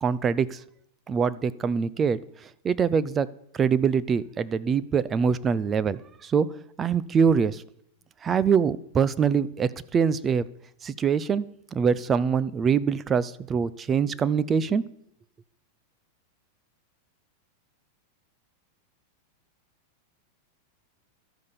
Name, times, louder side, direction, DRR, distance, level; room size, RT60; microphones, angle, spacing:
voice 1, 0.0-0.6 1.1-3.3 3.5-6.5 6.8-7.6 8.2-10.4 10.8-11.5 11.7-14.8, right 6 dB, 20° right, 17 dB, 0.7 m, -24 dB
13.0 x 9.7 x 6.9 m, 0.73 s
supercardioid pair, 150°, 0 cm